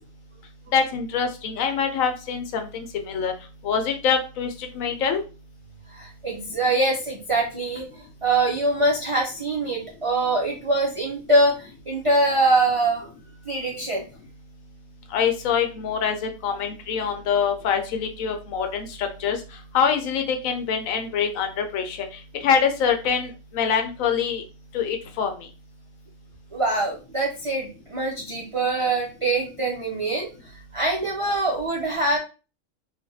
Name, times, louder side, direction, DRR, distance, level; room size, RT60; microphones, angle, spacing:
voice 1, 0.7-3.3 3.6-4.5 4.7-5.2 15.1-19.4 19.7-22.0 22.4-24.4 24.7-25.3, left 7 dB, 80° left, 5 dB, 1.0 m, -24 dB
voice 2, 5.9-7.9 8.2-13.1 13.5-14.0 26.5-30.3 30.7-32.2, right 2 dB, 60° right, -2 dB, 0.3 m, -23 dB
3.3 x 2.2 x 2.6 m, 0.33 s
omnidirectional pair, 1.4 m